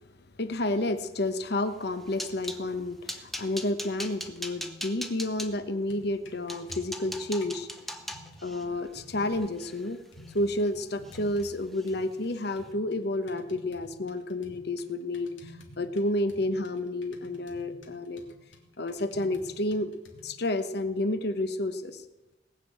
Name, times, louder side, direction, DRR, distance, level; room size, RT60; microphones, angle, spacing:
voice 1, 0.4-7.7 8.4-10.0 10.3-18.2 18.8-19.9 20.2-22.0, left 1 dB, 55° left, 10 dB, 1.1 m, -30 dB
sound 1, 1.7-2.6 3.1-5.5 6.1-6.2 6.5-10.7 11.0-11.5 11.7-11.9 12.3-12.5, equal, ahead, 0.9 m, -40 dB
sound 2, 5.7-7.6 8.1-9.7 10.1-11.6 11.9-20.3, left 1 dB, 85° left, 2.4 m, -51 dB
18.5 x 6.5 x 8.7 m, 1.1 s
head